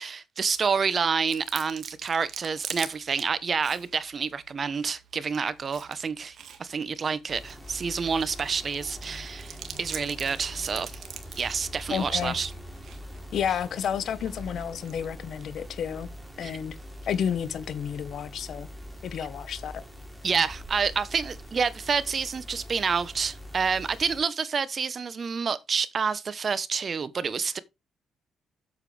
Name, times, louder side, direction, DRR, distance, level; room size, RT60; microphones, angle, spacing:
voice 1, 0.0-10.9 11.4-12.5 16.4-16.6 20.2-27.6, right 5 dB, 45° right, 0.9 m, -28 dB
Chewing mastication, 0.5-18.1, right 8 dB, 65° right, 1.8 m, -46 dB
sound 1, 7.3-24.2, equal, 5° right, 3.4 m, -43 dB
voice 2, 11.9-12.3 13.3-16.1 16.4-16.7 17.0-18.7 19.0-19.8, left 8 dB, 65° left, 1.2 m, -31 dB
8.2 x 7.5 x 3.4 m
cardioid pair, 90°, 0 cm